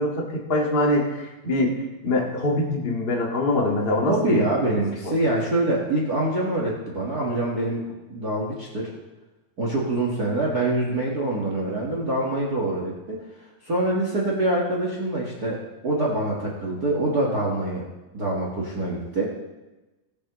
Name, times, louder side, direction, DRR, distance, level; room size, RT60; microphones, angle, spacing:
voice 1, 0.0-1.7 2.0-4.4, left 1 dB, 55° left, -2 dB, 0.6 m, -23 dB
voice 2, 4.1-7.8 8.1-8.9 9.6-13.2 13.6-17.8 18.1-19.3, right 2 dB, 65° right, -3 dB, 0.9 m, -25 dB
19.0 x 8.4 x 3.1 m, 1.1 s
omnidirectional pair, 4.6 m